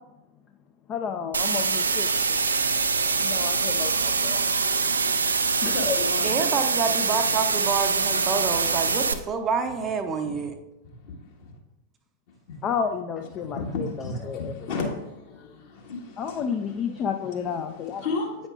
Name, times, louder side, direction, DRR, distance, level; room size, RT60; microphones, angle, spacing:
voice 1, 0.9-2.4 3.2-4.4 5.6-5.7 12.6-14.5 15.3-15.5 16.2-18.0, left 7 dB, 30° left, 5 dB, 0.4 m, -31 dB
sound 1, 1.3-9.1, right 4 dB, 75° right, 0.4 m, -24 dB
voice 2, 5.6-6.4 10.2-10.4 11.0-11.5 12.5-12.6 13.5-16.5 17.0-17.1 18.0-18.4, left 3 dB, 50° left, 0 dB, 1.4 m, -33 dB
voice 3, 6.2-10.5, right 5 dB, 25° right, 6 dB, 0.6 m, -28 dB
8.7 x 5.2 x 2.4 m, 0.94 s
figure-of-eight pair, 90°, 0 cm